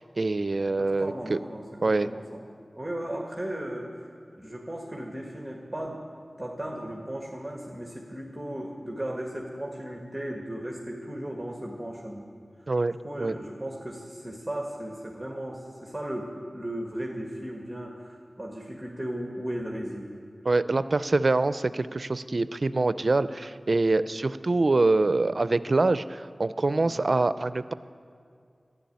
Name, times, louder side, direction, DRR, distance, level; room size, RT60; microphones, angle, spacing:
voice 1, 0.0-1.4 1.8-2.1 12.7-13.4 20.5-27.7, right 3 dB, 60° right, 14 dB, 0.5 m, -25 dB
voice 2, 0.8-2.4 2.7-3.9 4.3-6.0 6.4-12.3 13.0-20.1 26.8-27.1, right 1 dB, 10° right, -1 dB, 1.9 m, -36 dB
13.0 x 11.0 x 9.4 m, 2.3 s
cardioid pair, 40°, 0 cm